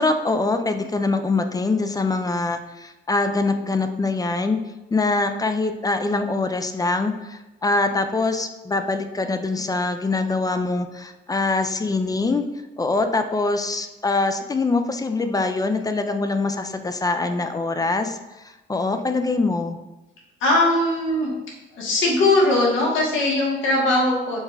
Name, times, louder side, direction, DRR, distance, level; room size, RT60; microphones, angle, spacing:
voice 1, 0.0-4.6 4.9-12.4 12.8-18.2 18.4-19.8, left 3 dB, 20° left, 7 dB, 0.4 m, -23 dB
voice 2, 20.4-21.3 21.7-24.4, left 2 dB, 80° left, -3 dB, 1.3 m, -20 dB
6.3 x 2.4 x 3.3 m, 1.0 s
cardioid pair, 90°, 20 cm